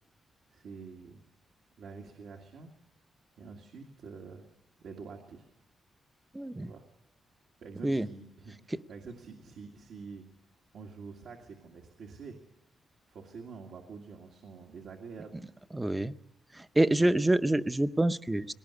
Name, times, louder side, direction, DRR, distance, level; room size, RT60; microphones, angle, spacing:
voice 1, 0.5-1.2 1.8-2.7 3.4-4.5 4.8-5.5 6.6-6.9 7.6-10.3 10.7-12.4 13.1-15.4 16.9-17.1, right 5 dB, 75° right, 0 dB, 2.1 m, -47 dB
voice 2, 6.3-6.7 7.8-8.1 15.7-16.1 16.5-18.5, right 1 dB, 10° right, 13 dB, 0.7 m, -27 dB
19.0 x 18.0 x 9.7 m, 1.0 s
cardioid pair, 120°, 0 cm